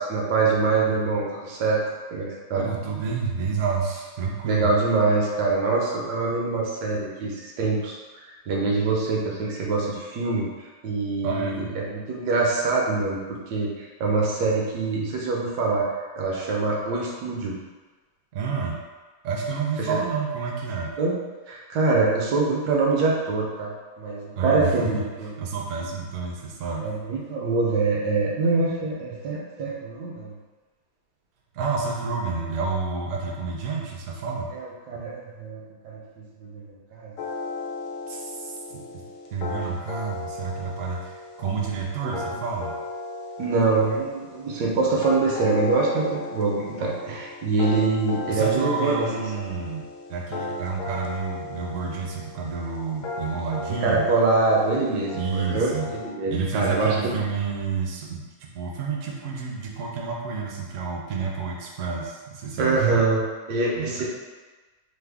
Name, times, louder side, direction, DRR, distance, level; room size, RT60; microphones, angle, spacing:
voice 1, 0.0-1.8 2.1-2.6 4.4-8.0 8.2-10.5 10.8-13.2 13.5-17.6 19.8-20.0 21.0-21.1 21.5-25.3 25.8-25.9 26.8-30.3 34.5-36.0 36.4-37.1 42.0-42.2 43.4-49.0 53.8-57.1 62.6-63.2 63.5-64.0, right 3 dB, 85° right, -2 dB, 1.3 m, -24 dB
voice 2, 2.5-4.7 11.2-11.7 18.3-18.8 19.2-20.9 24.4-25.0 25.4-26.9 31.5-34.5 38.1-39.0 39.3-42.7 48.3-54.1 55.1-55.9 56.3-63.0 63.8-64.0, right 5 dB, 65° right, -1 dB, 0.8 m, -29 dB
sound 1, 37.2-56.1, left 3 dB, 85° left, 1.2 m, -36 dB
3.3 x 2.0 x 3.4 m, 1.3 s
omnidirectional pair, 1.8 m